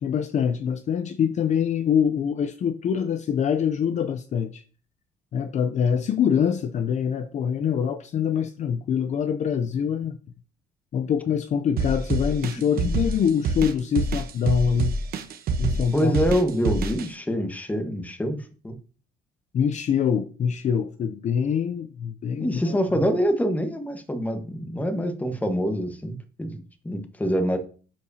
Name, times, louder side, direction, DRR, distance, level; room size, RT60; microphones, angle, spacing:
voice 1, 0.0-4.6 5.3-10.2 10.9-14.9 15.6-16.1 19.5-22.8, left 7 dB, 45° left, 0.6 m, -24 dB
sound 1, 11.8-17.1, right 3 dB, 60° right, 1.0 m, -26 dB
voice 2, 15.9-18.4 18.6-18.8 22.4-27.6, equal, 10° left, 1.3 m, -25 dB
11.5 x 4.8 x 2.8 m
cardioid pair, 110°, 17 cm